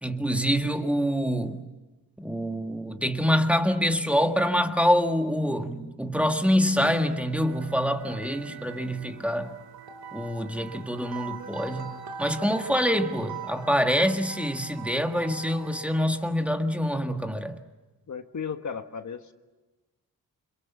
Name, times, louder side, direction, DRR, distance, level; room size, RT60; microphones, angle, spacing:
voice 1, 0.0-1.6 2.2-9.6 10.1-17.6, equal, 5° right, 1.7 m, -26 dB
sound 1, 6.8-16.3, right 7 dB, 80° right, 2.3 m, -42 dB
voice 2, 18.1-19.3, left 6 dB, 50° left, 1.4 m, -35 dB
29.0 x 26.5 x 7.1 m
wide cardioid pair, 130°, 37 cm